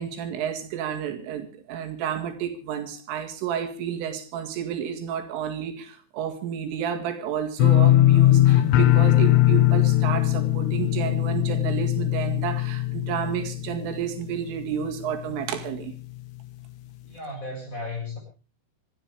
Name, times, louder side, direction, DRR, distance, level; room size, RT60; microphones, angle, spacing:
voice 1, 0.0-16.0, right 8 dB, 85° right, 4.5 m, -31 dB
sound 1, 7.6-14.5 14.8-15.3 15.7-15.8, left 14 dB, 85° left, 3.6 m, -20 dB
voice 2, 17.0-18.2, left 2 dB, 15° left, 7.3 m, -34 dB
26.5 x 12.5 x 3.4 m
omnidirectional pair, 5.6 m